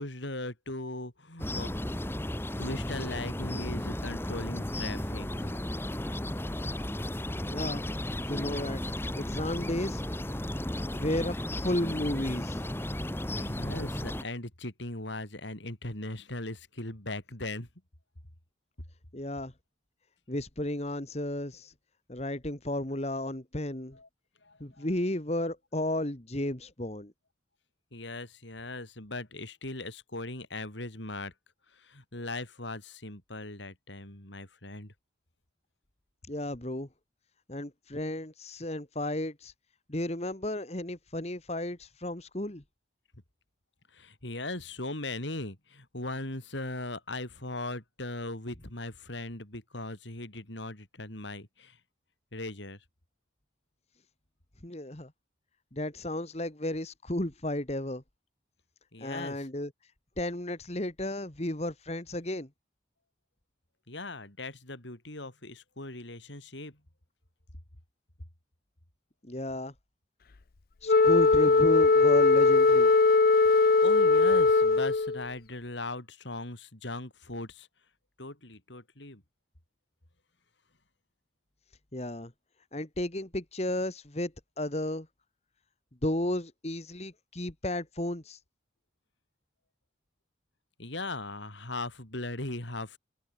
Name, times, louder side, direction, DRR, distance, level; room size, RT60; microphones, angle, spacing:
voice 1, 0.0-1.7 2.6-5.5 13.3-17.7 23.9-24.1 24.4-24.9 27.9-31.3 31.7-34.9 43.9-51.8 52.3-52.8 58.9-59.5 63.9-66.8 73.5-77.7 78.2-79.2 90.8-93.0, left 2 dB, 70° left, 4.4 m, -39 dB
sound 1, 1.4-14.2, left 1 dB, 10° left, 1.2 m, -34 dB
voice 2, 7.5-7.9 8.2-10.0 10.9-12.6 19.1-19.5 20.3-21.7 22.1-24.0 24.6-27.1 36.3-36.9 37.5-39.5 39.9-42.6 54.6-55.1 55.7-58.0 59.0-59.7 60.2-62.5 69.2-69.7 70.8-72.9 81.9-82.3 82.7-85.1 86.0-88.4, left 1 dB, 35° left, 1.8 m, -33 dB
Wind instrument woodwind instrument, 70.9-75.2, left 3 dB, 50° left, 0.5 m, -20 dB
open air
head